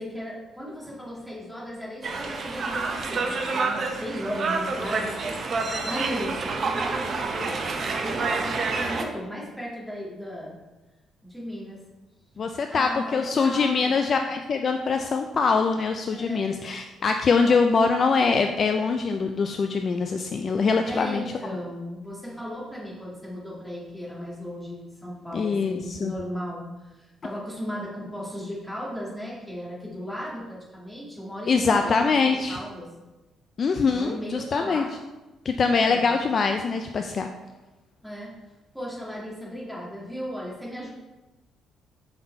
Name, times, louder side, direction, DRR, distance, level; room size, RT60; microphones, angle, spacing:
voice 1, 0.0-10.5 11.2-11.8 12.7-14.0 16.1-16.4 17.4-17.6 20.8-32.9 33.9-34.9 35.6-36.1 38.0-38.3 38.7-40.9, equal, ahead, -6 dB, 1.7 m, -36 dB
sound 1, 2.0-9.0, right 4 dB, 40° right, 0.6 m, -28 dB
voice 2, 12.4-21.2 25.3-26.1 31.5-32.6 33.6-34.8 35.5-37.3, left 4 dB, 35° left, 5 dB, 0.3 m, -23 dB
5.5 x 4.0 x 4.3 m, 1.1 s
cardioid pair, 145°, 0 cm